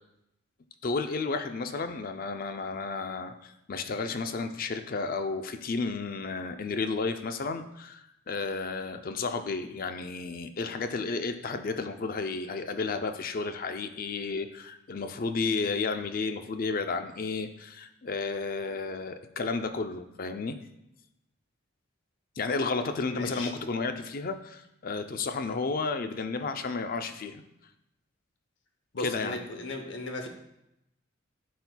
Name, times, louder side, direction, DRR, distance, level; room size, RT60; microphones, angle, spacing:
voice 1, 0.8-20.6 22.4-27.4 29.0-29.4, left 4 dB, 45° left, 8 dB, 0.4 m, -32 dB
voice 2, 23.1-23.5 28.9-30.3, left 2 dB, 65° left, 4 dB, 0.9 m, -36 dB
12.0 x 4.2 x 2.2 m, 0.84 s
head